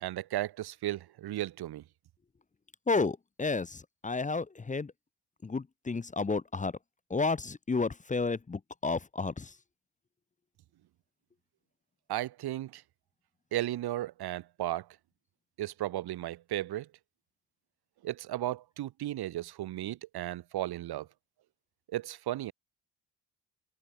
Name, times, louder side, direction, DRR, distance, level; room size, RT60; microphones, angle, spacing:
voice 1, 0.0-1.8 12.1-12.8 13.5-14.9 15.6-16.9 18.0-21.1 21.9-22.5, right 14 dB, 55° right, 1.2 m, -35 dB
voice 2, 2.9-4.9 5.4-6.7 7.1-9.5, left 4 dB, 15° left, 0.8 m, -31 dB
hypercardioid pair, 45°, 45 cm